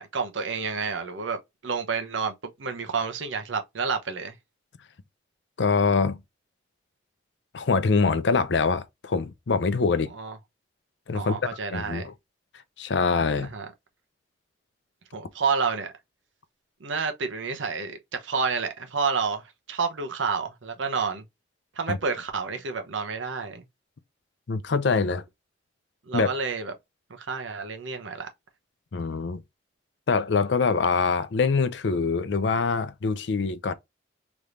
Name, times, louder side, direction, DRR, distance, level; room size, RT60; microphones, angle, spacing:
voice 1, 0.0-4.3 10.1-10.4 11.1-12.1 13.4-13.7 15.1-15.9 16.8-21.2 21.8-23.6 26.1-26.7 27.1-28.3, right 5 dB, 80° right, 0.8 m, -29 dB
voice 2, 5.6-6.2 7.5-10.1 11.1-11.4 11.7-12.1 12.8-13.5 21.9-22.0 24.5-25.2 26.1-26.3 28.9-29.4 30.1-33.7, left 4 dB, 65° left, 0.5 m, -24 dB
3.3 x 3.0 x 2.5 m
head